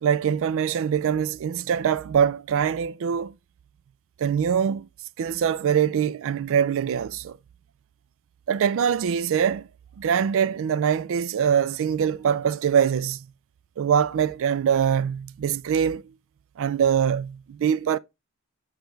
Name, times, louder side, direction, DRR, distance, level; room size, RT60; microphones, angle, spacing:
voice 1, 0.0-3.3 4.2-4.9 5.2-7.4 8.5-9.7 10.0-13.3 13.8-16.0 16.6-18.0, right 8 dB, 65° right, 0.3 m, -23 dB
7.1 x 3.3 x 4.4 m
head